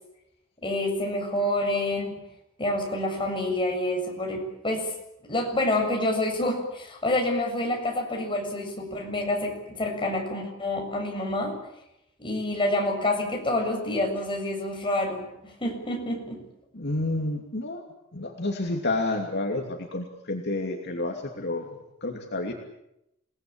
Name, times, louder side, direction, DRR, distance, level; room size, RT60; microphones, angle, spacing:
voice 1, 0.6-2.1 2.6-4.9 5.3-11.6 12.2-16.4, left 1 dB, 25° left, 2 dB, 7.3 m, -28 dB
voice 2, 16.7-17.8 18.1-22.5, left 2 dB, 55° left, 2 dB, 2.8 m, -30 dB
28.5 x 19.0 x 8.8 m, 0.84 s
head